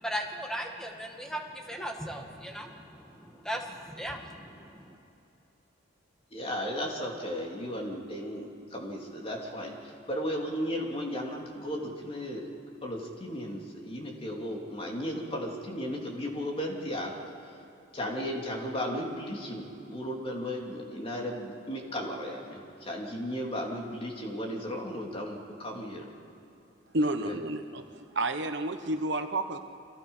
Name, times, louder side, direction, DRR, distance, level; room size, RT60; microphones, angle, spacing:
voice 1, 0.0-4.9, equal, 5° left, 2 dB, 2.0 m, -37 dB
voice 2, 6.3-12.5 12.8-17.1 17.9-26.0 27.2-27.4, equal, 30° left, 0 dB, 3.1 m, -35 dB
voice 3, 26.9-27.8 28.1-29.6, right 2 dB, 65° right, 7 dB, 1.1 m, -30 dB
29.5 x 24.0 x 5.7 m, 2.8 s
head